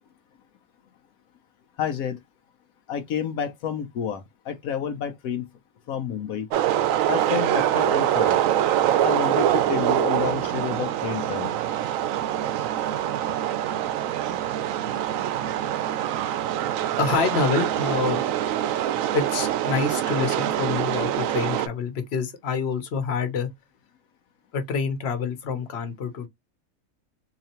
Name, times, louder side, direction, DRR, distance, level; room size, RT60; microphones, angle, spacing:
voice 1, 1.8-2.2 2.9-4.2 4.5-5.4 5.9-6.5 7.1-8.4 9.0-11.5, left 8 dB, 80° left, 1.1 m, -29 dB
sound 1, 6.5-21.7, right 11 dB, 75° right, 0.9 m, -24 dB
voice 2, 17.0-18.2 19.1-23.5 24.5-26.3, left 5 dB, 50° left, 1.1 m, -27 dB
3.9 x 2.8 x 2.8 m
omnidirectional pair, 1.5 m